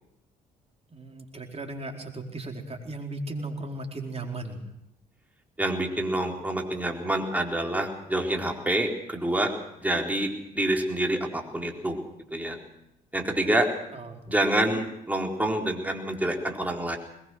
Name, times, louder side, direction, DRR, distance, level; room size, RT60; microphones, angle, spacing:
voice 1, 0.9-4.6 13.9-14.6, right 2 dB, 30° right, 2 dB, 4.5 m, -36 dB
voice 2, 5.6-9.5 9.8-10.3 10.5-12.0 12.3-12.6 13.1-13.7 14.3-17.0, right 1 dB, 10° right, 1 dB, 4.2 m, -27 dB
21.0 x 20.5 x 6.3 m, 0.84 s
hypercardioid pair, 50°, 20 cm